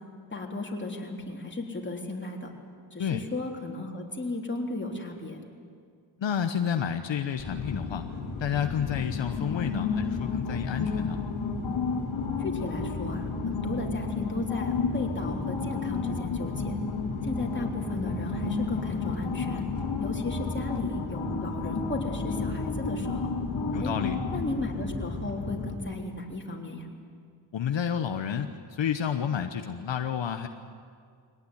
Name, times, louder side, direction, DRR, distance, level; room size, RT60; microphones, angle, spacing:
voice 1, 0.3-2.5 2.9-5.4 12.4-16.8 17.2-19.7 20.0-23.3 23.8-23.9 24.3-26.9, left 2 dB, 25° left, 1 dB, 3.5 m, -35 dB
voice 2, 6.2-8.0 8.4-11.2 23.7-24.2 27.5-30.5, left 8 dB, 70° left, 7 dB, 1.1 m, -30 dB
sound 1, 7.4-25.7, left 4 dB, 90° left, 2.6 m, -31 dB
22.0 x 18.5 x 9.9 m, 2.1 s
cardioid pair, 85°, 46 cm